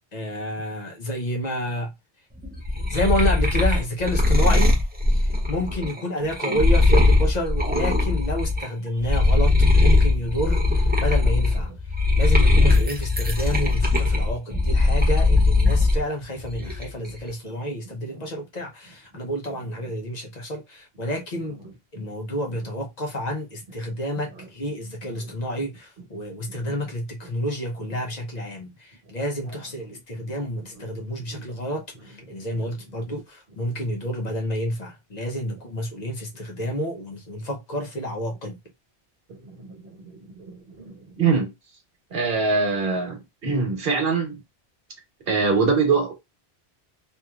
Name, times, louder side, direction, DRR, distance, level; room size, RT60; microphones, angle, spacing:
voice 1, 0.1-1.9 2.9-4.8 5.1-11.7 12.2-21.6 21.9-38.6, equal, 45° left, 0.8 m, -29 dB
sound 1, 2.4-8.7 9.0-16.0 16.4-17.1, left 2 dB, 10° right, 0.5 m, -20 dB
voice 2, 39.4-39.8 40.4-41.5 42.1-44.4 45.3-46.1, right 4 dB, 70° right, 1.3 m, -23 dB
2.9 x 2.7 x 2.3 m
omnidirectional pair, 1.1 m